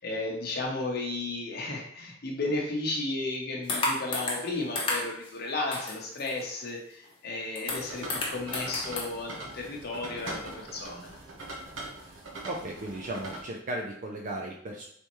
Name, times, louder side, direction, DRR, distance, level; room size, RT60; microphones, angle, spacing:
voice 1, 0.0-11.1, left 2 dB, 55° left, -1 dB, 0.8 m, -34 dB
sound 1, 3.7-4.5 4.8-5.3 5.7-6.6 7.1-7.2 7.3-9.1, left 2 dB, 25° left, 0.9 m, -32 dB
sound 2, 7.6-13.4, right 2 dB, 80° right, 1.0 m, -42 dB
voice 2, 12.4-14.9, right 1 dB, 40° right, 0 dB, 0.4 m, -35 dB
4.1 x 3.4 x 3.0 m, 0.70 s
head